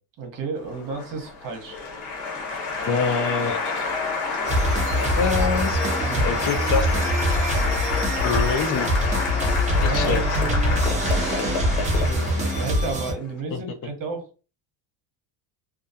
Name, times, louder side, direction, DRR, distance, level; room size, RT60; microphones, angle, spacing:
voice 1, 0.2-1.8 2.8-3.5 6.0-6.4 9.7-10.2 11.1-14.4, right 3 dB, 45° right, 1.0 m, -33 dB
Applause, 0.6-13.1, left 4 dB, 75° left, 1.2 m, -28 dB
voice 2, 2.8-3.9 5.2-5.8 6.2-6.9 8.2-8.9 9.8-10.2 13.5-13.6, left 5 dB, 45° left, 0.5 m, -25 dB
sound 1, 4.4-13.1, equal, 15° right, 0.6 m, -24 dB
2.4 x 2.2 x 2.6 m
cardioid pair, 120°, 44 cm